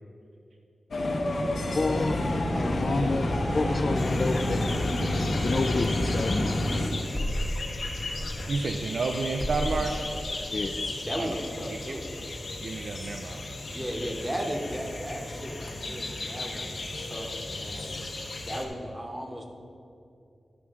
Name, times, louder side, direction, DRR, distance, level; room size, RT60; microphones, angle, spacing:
sound 1, 0.9-6.9, left 1 dB, 85° left, 1.0 m, -27 dB
voice 1, 1.7-3.3 3.5-4.7 5.2-6.6 10.5-10.8, left 3 dB, 50° left, 7 dB, 0.4 m, -29 dB
sound 2, 3.9-18.7, left 2 dB, 65° left, 1.1 m, -37 dB
sound 3, 7.0-9.1 9.4-10.1, equal, 10° left, 1.0 m, -33 dB
voice 2, 8.5-9.9 11.2-11.3 11.7-11.8 12.6-13.4, right 3 dB, 70° right, 4 dB, 0.4 m, -30 dB
voice 3, 11.0-12.0 13.7-18.0 18.4-19.5, equal, 15° right, 1 dB, 1.0 m, -35 dB
13.0 x 5.9 x 3.6 m, 2.6 s
wide cardioid pair, 125°, 0 cm